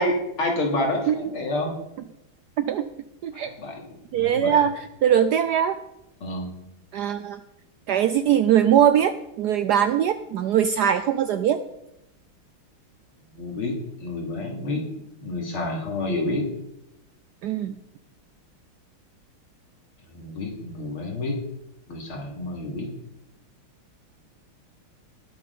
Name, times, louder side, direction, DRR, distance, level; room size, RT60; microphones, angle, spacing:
voice 1, 0.0-1.7 3.3-3.7 4.1-4.6 6.2-6.5 13.3-14.9 15.2-16.5 20.1-21.4 21.9-22.9, left 2 dB, 85° left, 1 dB, 3.5 m, -28 dB
voice 2, 2.6-2.9 3.2-3.5 4.1-5.8 6.9-7.4 7.9-11.6 17.4-17.7, right 9 dB, 75° right, 11 dB, 0.9 m, -21 dB
19.0 x 6.7 x 5.4 m, 0.86 s
omnidirectional pair, 2.3 m